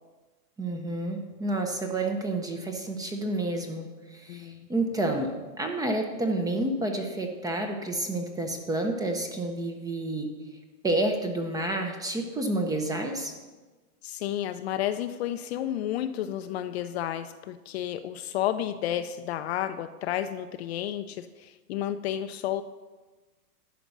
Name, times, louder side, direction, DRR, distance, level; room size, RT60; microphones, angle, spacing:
voice 1, 0.6-10.3 10.8-13.3, right 2 dB, 10° right, 4 dB, 0.5 m, -29 dB
voice 2, 4.3-4.6 14.0-22.6, left 11 dB, 45° left, 10 dB, 0.4 m, -31 dB
11.5 x 5.1 x 6.8 m, 1.3 s
hypercardioid pair, 130°, 47 cm